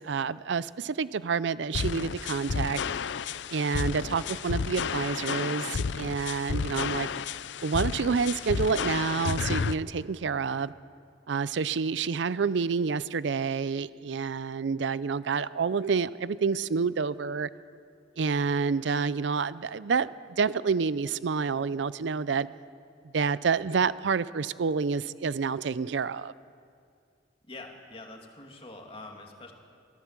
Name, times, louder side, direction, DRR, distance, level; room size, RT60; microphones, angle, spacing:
voice 1, 0.0-2.8 3.5-7.1 7.6-10.7 11.3-17.5 18.2-22.5 23.1-26.3, right 5 dB, 70° right, 17 dB, 0.5 m, -28 dB
sound 1, 1.7-9.7, left 5 dB, 70° left, 0.5 m, -32 dB
voice 2, 27.5-29.5, left 2 dB, 30° left, 2 dB, 2.4 m, -45 dB
23.5 x 15.5 x 7.4 m, 2.3 s
head